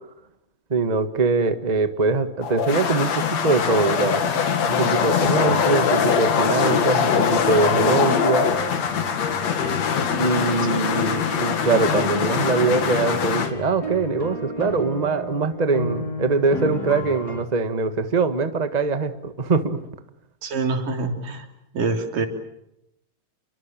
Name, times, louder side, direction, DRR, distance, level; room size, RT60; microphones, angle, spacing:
voice 1, 0.7-4.2 4.7-8.5 10.2-19.8, right 4 dB, 55° right, 9 dB, 0.4 m, -22 dB
sound 1, 2.4-13.5, left 7 dB, 55° left, 3.0 m, -22 dB
sound 2, 5.2-17.4, left 2 dB, 30° left, 3.4 m, -34 dB
voice 2, 20.4-21.4 21.7-22.3, right 3 dB, 70° right, 5 dB, 4.9 m, -25 dB
29.5 x 23.5 x 7.5 m, 0.81 s
omnidirectional pair, 3.9 m